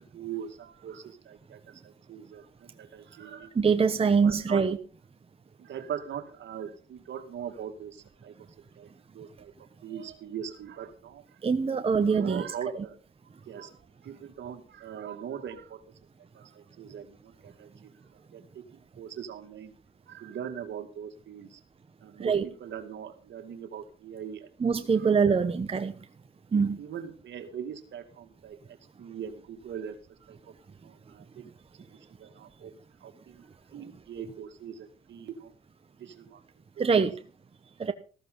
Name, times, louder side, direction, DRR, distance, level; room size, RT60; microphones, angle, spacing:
voice 1, 0.0-3.5 4.0-4.7 5.6-8.9 9.1-11.4 11.7-13.0 13.4-15.8 16.3-17.9 18.3-19.7 20.1-21.6 22.0-24.5 24.8-25.5 26.5-30.0 30.3-30.5 30.8-31.4 32.2-32.7 33.0-35.5 36.0-36.4 36.8-36.9, right 8 dB, 65° right, 7 dB, 2.3 m, -41 dB
voice 2, 3.6-4.8 11.4-12.4 22.2-22.4 24.6-25.9 26.5-26.8 36.8-37.1 37.8-37.9, right 5 dB, 30° right, 8 dB, 1.1 m, -24 dB
14.5 x 13.5 x 3.9 m, 0.37 s
cardioid pair, 90°, 20 cm